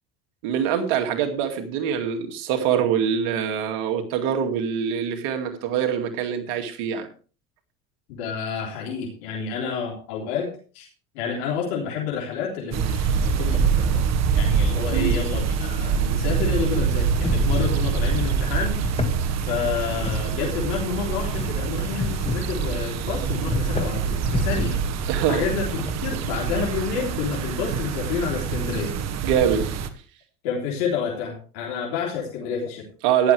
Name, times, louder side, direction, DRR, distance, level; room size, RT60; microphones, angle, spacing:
voice 1, 0.4-7.1 14.9-15.2 25.1-25.4 29.2-29.7 33.0-33.3, right 8 dB, 80° right, 5 dB, 2.4 m, -24 dB
voice 2, 8.1-10.9 11.1-14.1 14.3-18.8 19.4-24.8 25.3-25.7 26.0-28.9 30.4-32.9, left 6 dB, 85° left, -1 dB, 3.5 m, -29 dB
sound 1, 12.7-29.9, right 6 dB, 60° right, 1.6 m, -25 dB
sound 2, 16.9-25.9, left 4 dB, 20° left, 2.2 m, -32 dB
14.5 x 11.0 x 3.4 m, 0.38 s
supercardioid pair, 90°, 31 cm